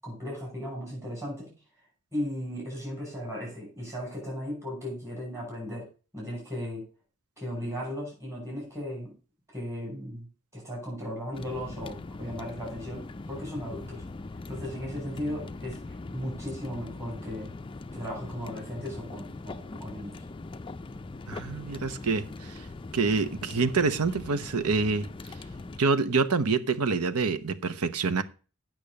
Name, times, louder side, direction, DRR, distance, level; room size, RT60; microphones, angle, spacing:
voice 1, 0.0-1.5 2.1-5.9 6.1-6.9 7.4-9.1 9.5-10.3 10.5-14.0 14.5-17.5 17.9-20.2, equal, 15° right, 6.1 m, -36 dB
sound 1, 11.3-25.8, left 3 dB, 20° left, 0.4 m, -41 dB
voice 2, 21.3-22.7 22.9-25.1 25.8-28.2, right 4 dB, 85° right, 0.9 m, -26 dB
8.7 x 6.2 x 6.4 m
head